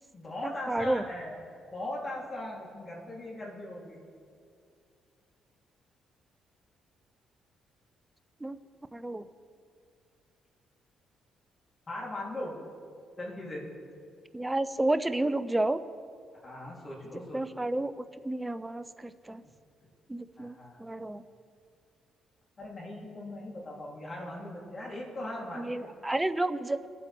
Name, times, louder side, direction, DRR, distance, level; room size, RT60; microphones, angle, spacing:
voice 1, 0.1-1.4 1.7-4.0 11.9-12.5 13.2-13.7 16.4-17.7 20.4-20.8 22.6-25.9, left 1 dB, 35° left, -4 dB, 3.5 m, -39 dB
voice 2, 0.7-1.0 8.4-8.6 8.9-9.2 14.3-15.8 17.3-17.9 18.2-19.4 20.1-20.5 20.8-21.2 25.6-26.8, right 2 dB, 10° right, 12 dB, 0.6 m, -30 dB
23.5 x 8.4 x 3.6 m, 2.3 s
cardioid pair, 90°, 0 cm